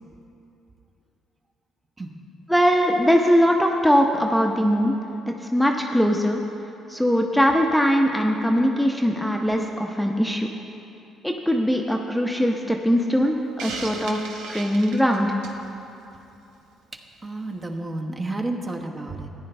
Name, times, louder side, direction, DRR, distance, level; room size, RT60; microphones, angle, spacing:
voice 1, 2.5-4.9 5.3-6.4 6.9-10.5 11.2-14.2 14.5-15.4, equal, ahead, 1 dB, 0.8 m, -21 dB
Hiss, 13.6-15.7, right 4 dB, 90° right, 0.9 m, -36 dB
voice 2, 17.2-19.3, right 2 dB, 30° right, 1 dB, 1.1 m, -31 dB
14.5 x 9.6 x 3.4 m, 2.8 s
supercardioid pair, 75°, 0 cm